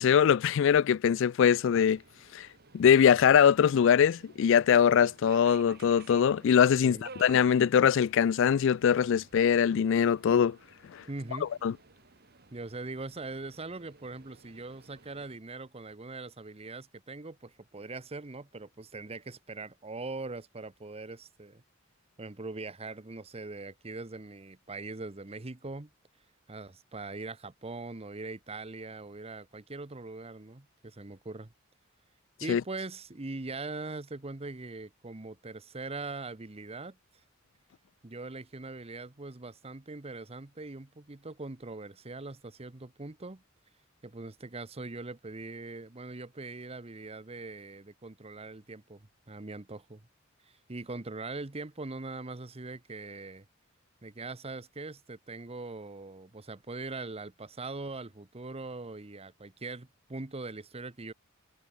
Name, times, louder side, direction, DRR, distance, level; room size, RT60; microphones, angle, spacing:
voice 1, 0.0-2.0 2.3-2.5 2.7-10.6 11.6-11.7 32.5-32.6, left 8 dB, 65° left, 0.3 m, -22 dB
Subway metro underground, 1.6-15.4, right 4 dB, 55° right, 2.6 m, -54 dB
voice 2, 6.8-7.1 11.1-11.5 12.5-21.6 22.2-25.9 26.5-31.5 32.4-37.0 38.0-43.4 44.0-50.0 50.7-53.5 54.0-61.1, right 3 dB, 30° right, 1.0 m, -41 dB
head